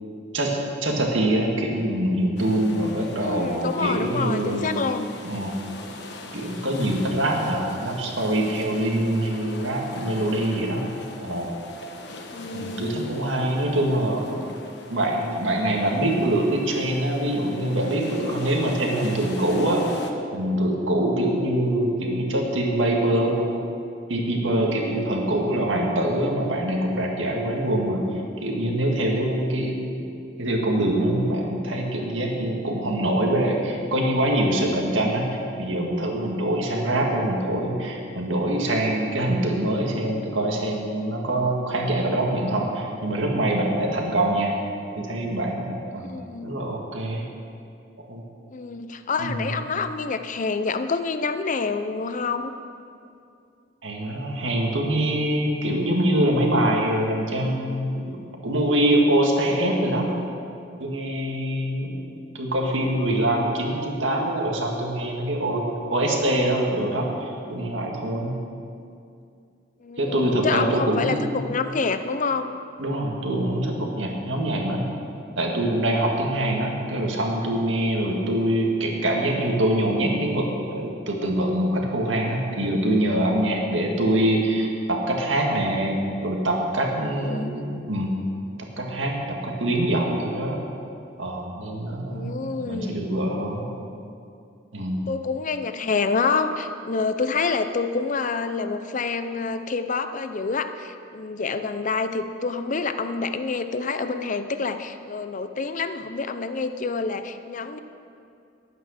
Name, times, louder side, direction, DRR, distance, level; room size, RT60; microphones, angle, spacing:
voice 1, 0.3-4.7 5.2-5.5 6.3-10.8 11.2-11.5 12.5-14.4 14.9-19.8 20.3-23.4 24.1-28.0 28.4-29.8 30.4-44.6 45.0-46.1 46.4-47.2 48.1-48.2 49.2-49.5 53.8-60.1 60.8-62.1 62.3-68.4 70.0-71.4 72.8-74.9 75.4-88.2 88.8-90.6 91.2-93.7 94.7-95.1, right 1 dB, 90° right, 0 dB, 1.9 m, -24 dB
sound 1, 2.4-20.1, left 3 dB, 65° left, 1.1 m, -42 dB
voice 2, 3.2-5.1 12.3-13.1 46.0-46.6 48.5-52.5 69.8-72.6 87.1-87.6 92.0-93.0 95.1-107.8, left 4 dB, 40° left, 10 dB, 0.6 m, -27 dB
11.5 x 9.1 x 6.5 m, 2.5 s
head